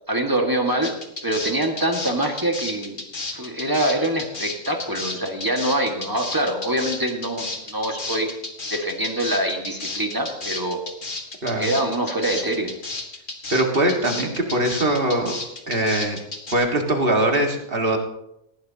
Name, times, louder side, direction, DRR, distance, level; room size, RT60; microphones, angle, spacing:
voice 1, 0.1-0.9 1.2-3.0 3.3-8.3 8.7-10.8 11.6-12.7, right 1 dB, 15° right, 2 dB, 1.7 m, -24 dB
sound 1, 0.8-16.5, left 3 dB, 45° left, 1.8 m, -32 dB
voice 2, 13.5-15.3 15.7-16.2 16.5-18.0, right 1 dB, 50° right, 2 dB, 2.0 m, -21 dB
19.0 x 15.0 x 2.8 m, 0.82 s
omnidirectional pair, 1.3 m